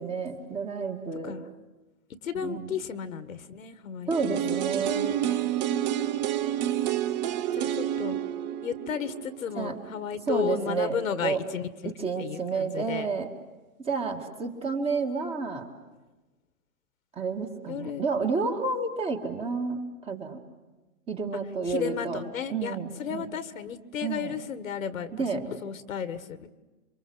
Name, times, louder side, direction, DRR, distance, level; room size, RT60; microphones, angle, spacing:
voice 1, 0.0-1.4 2.4-2.7 4.1-5.2 9.5-9.8 10.3-11.0 11.2-11.4 12.0-13.3 13.8-15.7 17.1-20.4 21.1-22.2 22.5-23.3 24.0-24.4 25.1-25.4, right 4 dB, 15° right, 4 dB, 2.0 m, -30 dB
voice 2, 2.2-4.6 4.8-5.5 7.3-8.2 8.6-11.9 12.2-13.1 17.7-18.0 21.7-26.5, left 8 dB, 70° left, 12 dB, 1.8 m, -34 dB
sound 1, 4.1-10.0 10.3-10.4, right 11 dB, 30° right, 0.9 m, -29 dB
28.0 x 25.0 x 8.0 m, 1.1 s
hypercardioid pair, 140°, 43 cm